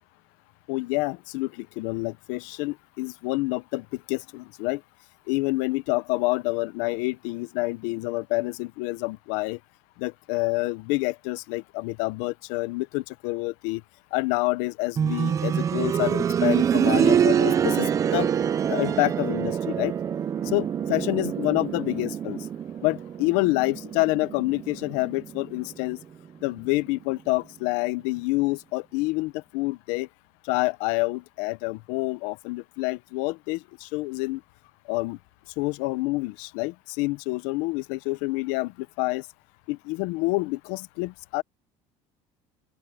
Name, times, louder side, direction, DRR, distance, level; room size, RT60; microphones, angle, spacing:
voice 1, 0.7-4.8 5.3-9.6 10.0-13.8 14.1-18.3 18.7-19.9 20.4-22.5 22.8-26.0 26.4-30.1 30.4-34.4 34.9-35.2 35.6-39.3 39.7-41.4, left 23 dB, 80° left, 0.8 m, -28 dB
sound 1, 15.0-25.7 27.1-27.2, right 8 dB, 25° right, 0.6 m, -25 dB
open air
cardioid pair, 155°, 12 cm